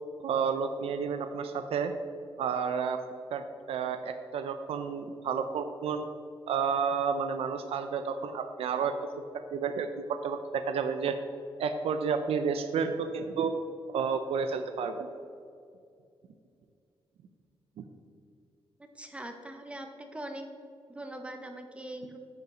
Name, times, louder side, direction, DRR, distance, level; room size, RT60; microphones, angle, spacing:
voice 1, 0.2-1.9 2.4-3.0 3.3-3.4 3.7-6.1 6.5-8.9 9.5-9.9 10.2-11.2 11.6-13.5 13.9-15.1, right 6 dB, 80° right, 8 dB, 0.5 m, -30 dB
voice 2, 18.9-20.5 20.9-22.2, right 1 dB, 10° right, 5 dB, 0.6 m, -41 dB
9.1 x 5.5 x 5.9 m, 2.4 s
wide cardioid pair, 170°, 10 cm